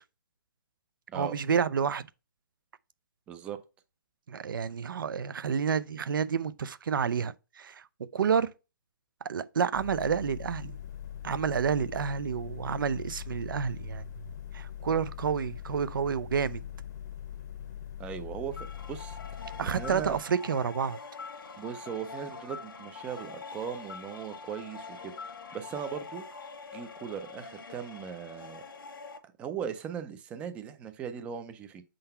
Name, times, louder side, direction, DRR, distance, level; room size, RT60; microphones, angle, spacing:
voice 1, 1.1-2.1 4.3-7.8 8.1-8.5 9.2-10.8 11.2-14.0 14.5-16.6 19.6-21.0, right 7 dB, 75° right, 0.4 m, -29 dB
voice 2, 3.3-3.6 18.0-19.2 19.6-20.2 21.6-25.1 25.5-26.2 26.7-28.6 29.2-31.8, right 8 dB, 10° right, 0.4 m, -38 dB
sound 1, 9.7-20.2, left 10 dB, 55° left, 0.7 m, -42 dB
sound 2, 18.5-29.2, left 4 dB, 85° left, 1.1 m, -44 dB
4.4 x 3.9 x 5.5 m
hypercardioid pair, 155°, 11 cm